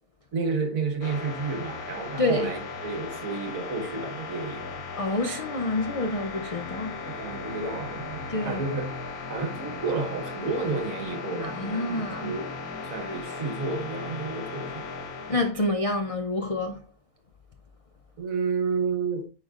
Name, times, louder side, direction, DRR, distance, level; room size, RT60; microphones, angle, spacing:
voice 1, 0.3-4.8 7.1-8.9 9.3-12.5 12.8-14.9 18.2-19.3, right 4 dB, 70° right, 1.7 m, -31 dB
sound 1, 1.0-15.5, left 4 dB, 80° left, 1.4 m, -37 dB
voice 2, 2.2-2.5 5.0-7.0 8.3-8.6 11.4-12.3 15.3-16.8, left 2 dB, 55° left, 0.3 m, -28 dB
9.4 x 4.3 x 2.4 m
omnidirectional pair, 1.5 m